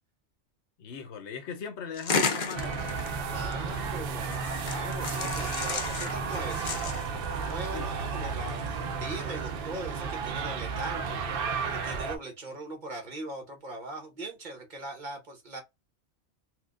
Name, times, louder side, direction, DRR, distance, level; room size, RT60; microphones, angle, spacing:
voice 1, 0.8-3.2 7.7-8.0, left 6 dB, 75° left, 0.9 m, -40 dB
sound 1, 1.9-3.8 4.2-7.0, left 4 dB, 50° left, 0.7 m, -33 dB
sound 2, 2.5-12.2, right 5 dB, 60° right, 0.7 m, -33 dB
voice 2, 3.2-6.9 7.3-15.6, right 2 dB, 40° right, 1.2 m, -40 dB
4.3 x 2.1 x 2.4 m
omnidirectional pair, 1.2 m